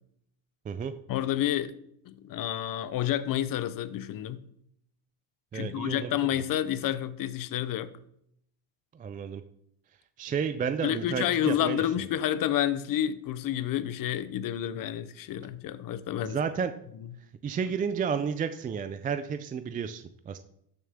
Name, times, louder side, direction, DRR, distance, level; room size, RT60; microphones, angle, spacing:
voice 1, 1.1-1.8 2.0-4.4 5.5-7.9 10.8-16.4, left 11 dB, 45° left, 0.8 m, -29 dB
voice 2, 5.5-6.4 8.9-9.4 10.2-11.8 16.2-16.7 17.4-20.4, right 6 dB, 20° right, 0.3 m, -32 dB
12.5 x 7.0 x 3.6 m
cardioid pair, 125°, 48 cm